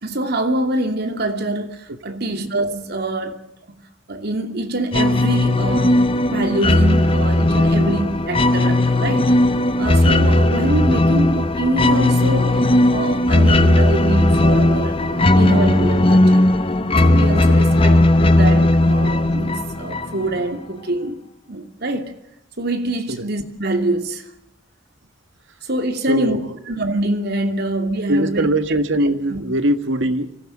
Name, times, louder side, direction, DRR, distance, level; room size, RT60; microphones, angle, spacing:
voice 1, 0.0-3.4 3.7-3.8 4.1-9.3 9.8-16.5 17.0-21.2 21.5-22.1 22.6-24.2 25.7-26.4 26.7-28.5 29.3-29.4, right 1 dB, 55° right, 2.7 m, -25 dB
sound 1, 4.9-20.4, left 1 dB, 30° left, 1.1 m, -16 dB
voice 2, 26.1-26.6 28.1-30.4, right 1 dB, 70° right, 1.7 m, -21 dB
24.5 x 15.0 x 8.9 m
head